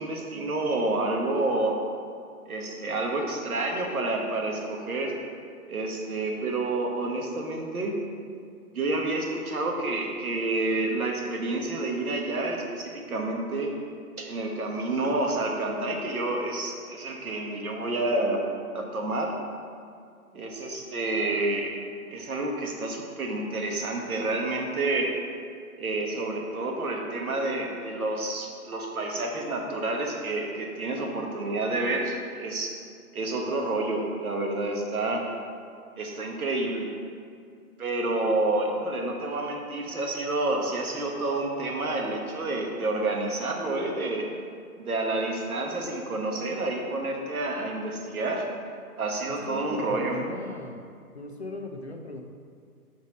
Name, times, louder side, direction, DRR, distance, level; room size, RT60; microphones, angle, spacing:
voice 1, 0.0-1.8 2.5-5.2 5.7-8.0 8.7-13.7 14.2-18.4 18.7-19.3 20.3-21.7 22.1-25.1 25.8-32.8 33.1-35.2 36.0-36.9 37.8-44.3 44.8-48.5 49.0-50.2, right 2 dB, 70° right, 1 dB, 1.2 m, -29 dB
voice 2, 49.3-50.8 51.1-52.2, left 2 dB, 50° left, 3 dB, 0.4 m, -38 dB
6.1 x 4.1 x 5.1 m, 2.3 s
hypercardioid pair, 180°, 45 cm